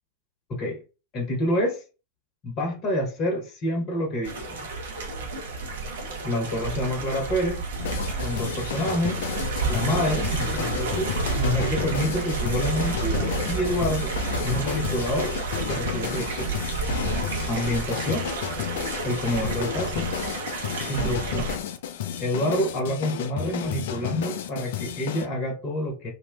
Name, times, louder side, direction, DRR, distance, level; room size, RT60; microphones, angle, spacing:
voice 1, 0.5-0.8 1.1-1.8 2.4-4.7 6.2-7.6 8.2-9.2 9.7-14.2 14.4-15.3 15.7-16.6 17.5-18.3 19.0-20.1 20.9-21.6 22.2-26.1, left 1 dB, 35° left, 1 dB, 0.8 m, -27 dB
sound 1, 4.2-21.6, right 3 dB, 60° right, 0.7 m, -30 dB
sound 2, 7.8-25.3, left 9 dB, 55° left, 0.3 m, -32 dB
2.8 x 2.1 x 2.3 m, 0.33 s
figure-of-eight pair, 90°, 0 cm